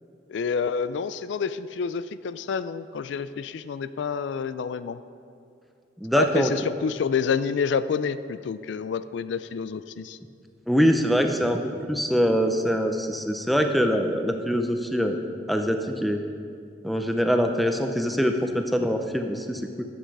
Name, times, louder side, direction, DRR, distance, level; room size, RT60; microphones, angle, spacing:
voice 1, 0.3-5.0 6.1-10.2, left 6 dB, 85° left, 14 dB, 0.3 m, -28 dB
voice 2, 6.0-6.5 10.7-15.2 15.5-16.2 16.8-19.9, equal, ahead, 5 dB, 0.5 m, -24 dB
10.0 x 7.9 x 4.7 m, 2.3 s
head